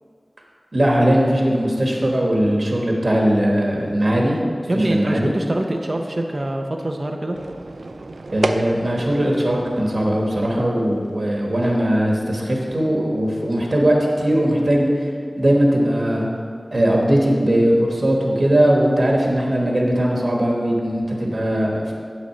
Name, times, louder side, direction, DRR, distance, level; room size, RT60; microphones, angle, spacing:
voice 1, 0.7-4.4 4.7-5.3 8.3-15.0 15.4-16.3 16.7-21.9, right 1 dB, 55° right, -1 dB, 1.3 m, -19 dB
voice 2, 4.7-7.4, right 1 dB, 40° right, 2 dB, 0.6 m, -24 dB
sound 1, 7.3-14.0, right 2 dB, 85° right, 0.4 m, -33 dB
9.3 x 4.0 x 6.6 m, 2.2 s
wide cardioid pair, 65°, 0 cm